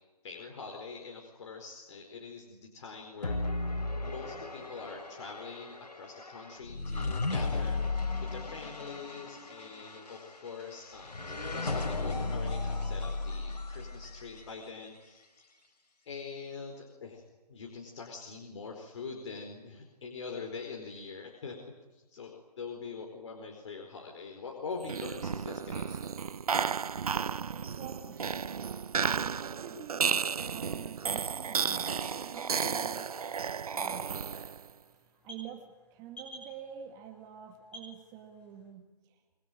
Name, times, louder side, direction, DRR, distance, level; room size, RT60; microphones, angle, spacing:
voice 1, 0.2-3.4 4.0-15.2 16.1-21.6 21.9-26.0, left 5 dB, 45° left, 2 dB, 4.5 m, -44 dB
sound 1, 3.2-14.5, left 3 dB, 80° left, 4.1 m, -35 dB
sound 2, 24.8-34.7, right 6 dB, 60° right, 1.0 m, -33 dB
voice 2, 27.8-28.3 28.9-33.1 33.8-34.1 35.2-39.2, right 9 dB, 20° right, 5 dB, 2.1 m, -47 dB
sound 3, 33.2-38.7, left 1 dB, 5° left, 6.1 m, -54 dB
26.0 x 21.5 x 9.0 m, 1.2 s
figure-of-eight pair, 150°, 21 cm